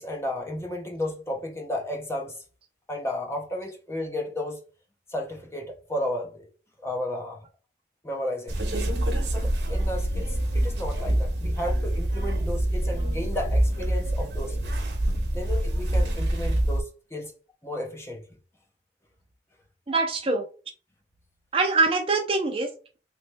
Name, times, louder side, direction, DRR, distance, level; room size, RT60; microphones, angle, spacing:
voice 1, 0.0-2.4 2.9-4.6 5.1-6.5 6.8-7.4 8.0-8.6 9.3-14.7 15.3-17.3 17.6-18.2, left 1 dB, 15° left, 0.6 m, -33 dB
sound 1, 8.5-16.8, right 1 dB, 65° right, 1.0 m, -26 dB
voice 2, 19.9-20.4 21.5-23.0, right 3 dB, 30° right, 0.5 m, -24 dB
3.2 x 3.1 x 3.2 m
head